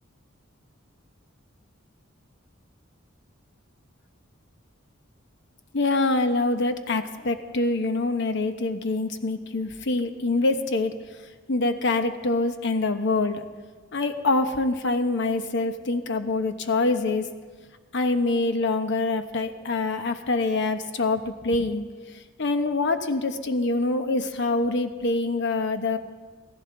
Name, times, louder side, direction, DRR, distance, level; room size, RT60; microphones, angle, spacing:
voice 1, 5.7-11.0 11.5-13.4 13.9-17.3 17.9-26.0, left 2 dB, 60° left, 8 dB, 0.9 m, -25 dB
16.0 x 14.5 x 3.8 m, 1.4 s
head